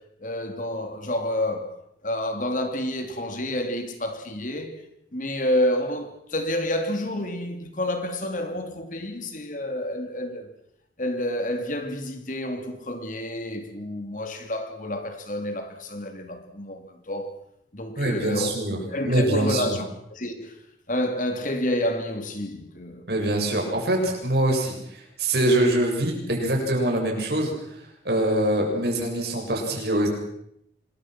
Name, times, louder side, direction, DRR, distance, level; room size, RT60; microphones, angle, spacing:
voice 1, 0.0-1.7 2.0-4.8 5.1-10.5 11.0-17.3 17.7-18.6 18.9-19.8 20.1-20.5 20.9-23.1, left 1 dB, 45° left, 2.9 m, -29 dB
voice 2, 18.0-19.8 23.1-24.8 25.2-27.5 28.0-30.1, right 1 dB, 60° right, 7.0 m, -24 dB
26.5 x 21.5 x 6.1 m
head